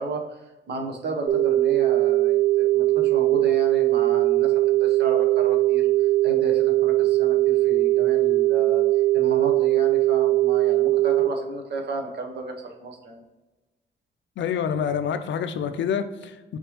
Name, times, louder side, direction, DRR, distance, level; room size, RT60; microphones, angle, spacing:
voice 1, 0.0-8.8 9.1-13.2, right 2 dB, 55° right, 0.8 m, -33 dB
sound 1, 1.3-11.3, right 17 dB, 90° right, 0.5 m, -20 dB
voice 2, 14.4-16.6, left 7 dB, 65° left, 0.4 m, -27 dB
4.8 x 3.5 x 2.9 m
wide cardioid pair, 155°, 20 cm